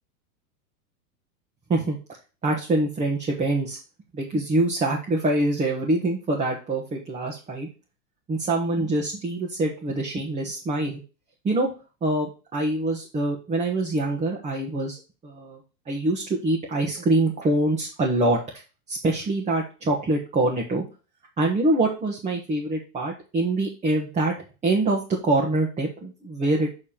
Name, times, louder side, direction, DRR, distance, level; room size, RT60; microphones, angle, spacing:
voice 1, 2.4-3.8 4.1-7.7 8.3-11.0 11.4-11.7 12.0-15.0 15.2-15.6 15.9-18.4 18.9-20.8 21.4-26.7, right 2 dB, 15° right, -1 dB, 1.4 m, -25 dB
7.1 x 4.3 x 5.6 m, 0.32 s
hypercardioid pair, 140°, 47 cm